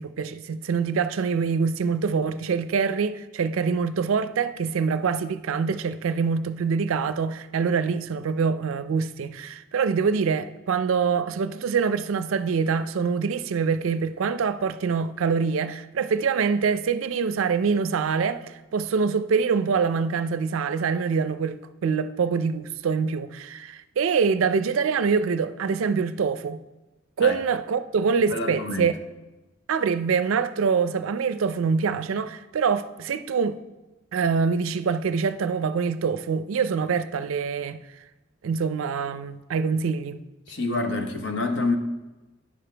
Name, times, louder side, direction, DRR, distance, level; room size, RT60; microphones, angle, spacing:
voice 1, 0.0-26.6 27.2-29.0 29.7-33.6 34.1-37.8 38.4-40.2, right 5 dB, 85° right, 0.4 m, -25 dB
voice 2, 28.3-28.9 40.5-41.8, left 2 dB, 60° left, 0.8 m, -27 dB
10.0 x 6.8 x 3.3 m
head